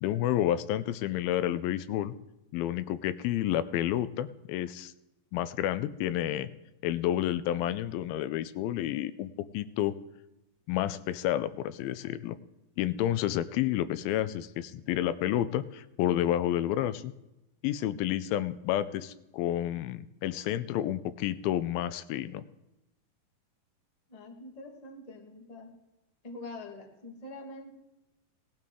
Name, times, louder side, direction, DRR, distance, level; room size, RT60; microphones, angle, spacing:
voice 1, 0.0-2.2 2.5-4.9 5.3-6.5 6.8-9.9 10.7-12.4 12.8-17.1 17.6-22.4, left 12 dB, 85° left, 14 dB, 2.4 m, -30 dB
voice 2, 24.1-25.7 26.2-27.7, left 2 dB, 30° left, 0 dB, 0.7 m, -45 dB
18.0 x 12.0 x 3.7 m, 0.93 s
omnidirectional pair, 4.2 m